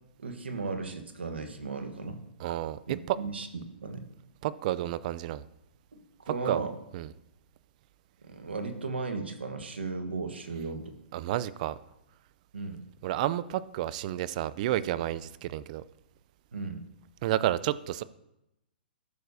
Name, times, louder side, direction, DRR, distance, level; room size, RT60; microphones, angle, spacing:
voice 1, 0.2-2.2 2.9-4.1 5.9-6.8 8.2-10.9 12.5-12.8 16.5-16.8, right 4 dB, 90° right, 6 dB, 1.3 m, -36 dB
voice 2, 2.4-2.8 3.1-3.2 4.4-5.4 6.3-6.6 6.9-7.1 11.1-11.8 13.0-15.8 17.2-18.0, right 13 dB, 45° right, 17 dB, 0.5 m, -30 dB
14.0 x 6.5 x 2.7 m, 0.87 s
hypercardioid pair, 130°, 6 cm